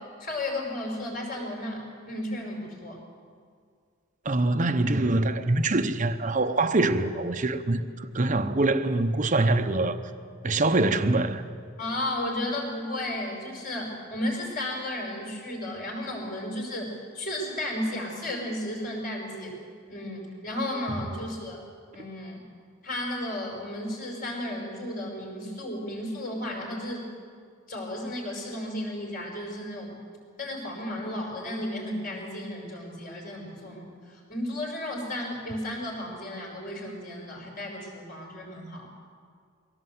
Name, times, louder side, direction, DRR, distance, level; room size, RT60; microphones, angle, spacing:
voice 1, 0.0-3.0 11.8-19.6 19.9-21.6 21.9-22.4 22.8-27.1 27.7-29.9 30.4-38.9, left 1 dB, 45° left, 5.7 m, -34 dB
voice 2, 4.2-10.0 10.4-11.4, right 2 dB, 40° right, 0.9 m, -24 dB
22.5 x 17.0 x 8.0 m
head